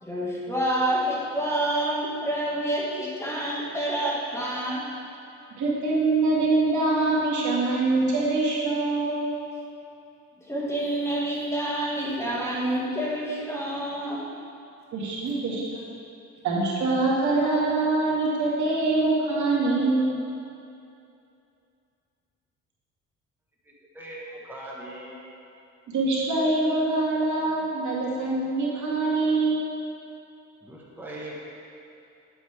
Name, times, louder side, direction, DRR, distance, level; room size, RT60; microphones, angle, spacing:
voice 1, 0.0-4.8 10.5-14.3 15.5-15.6, right 1 dB, 10° left, -6 dB, 2.1 m, -28 dB
voice 2, 5.6-9.2 14.9-15.6 16.4-20.1 25.9-29.7, right 2 dB, 70° right, -6 dB, 2.2 m, -24 dB
voice 3, 23.6-25.2 30.6-31.3, right 1 dB, 5° right, -5 dB, 1.5 m, -40 dB
10.0 x 7.9 x 3.6 m, 2.7 s
cardioid pair, 90°, 30 cm